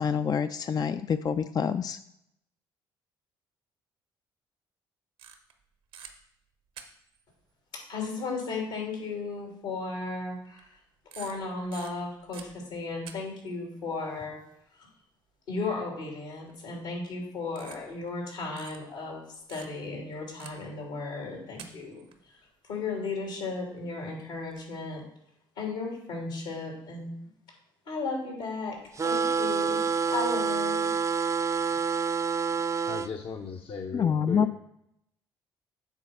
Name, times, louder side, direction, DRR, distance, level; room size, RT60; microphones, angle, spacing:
voice 1, 0.0-2.0 33.9-34.5, left 7 dB, 35° left, 10 dB, 0.4 m, -27 dB
sound 1, 5.2-5.6 5.9-6.1 6.8-7.2 8.4-8.5 9.0-9.1 10.5-10.8 11.1-13.1 13.4-13.5 16.5-16.8 17.5-18.2 18.6-18.8 19.5-20.0 20.4-20.7 21.4-22.2 23.8-23.9 24.3-24.6, right 8 dB, 80° right, 1.1 m, -47 dB
voice 2, 7.7-10.8 11.1-14.4 14.7-14.9 15.5-22.3 22.6-25.0 25.6-27.2 27.9-28.8 29.0-30.9, left 3 dB, 85° left, 0 dB, 2.9 m, -35 dB
sound 2, 29.0-33.1, right 5 dB, 25° right, 0.4 m, -27 dB
voice 3, 32.9-34.5, left 5 dB, 55° left, 2 dB, 0.8 m, -37 dB
8.2 x 4.1 x 5.7 m, 0.77 s
hypercardioid pair, 50°, 11 cm